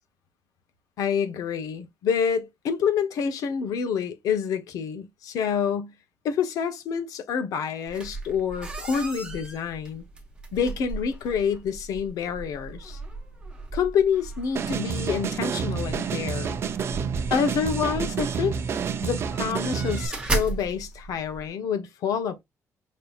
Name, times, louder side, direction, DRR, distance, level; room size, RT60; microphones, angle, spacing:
voice 1, 1.0-5.9 6.2-10.0 10.5-13.0 13.7-16.6 17.3-18.6 19.0-22.4, left 7 dB, 85° left, 1.0 m, -27 dB
sound 1, 7.9-21.5, right 3 dB, 15° right, 1.0 m, -37 dB
sound 2, 14.6-20.1, right 6 dB, 45° right, 0.6 m, -29 dB
5.3 x 2.9 x 2.4 m
cardioid pair, 160°, 6 cm